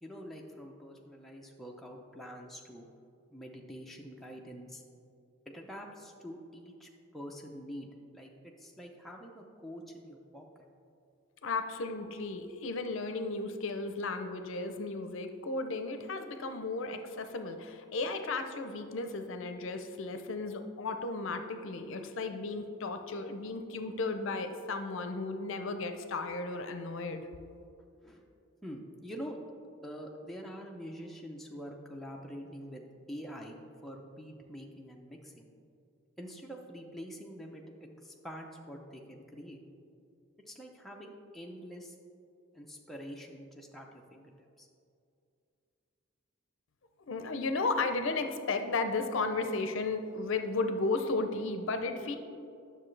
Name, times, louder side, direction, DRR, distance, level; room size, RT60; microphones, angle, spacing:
voice 1, 0.0-2.9 3.3-4.8 5.5-7.9 8.1-10.7 28.0-28.2 28.6-29.4 29.8-35.5 36.2-39.6 40.5-42.0 42.5-44.7, equal, ahead, -1 dB, 0.5 m, -46 dB
voice 2, 11.4-27.3 47.1-52.2, left 3 dB, 65° left, 7 dB, 0.5 m, -34 dB
9.8 x 6.5 x 3.2 m, 2.5 s
head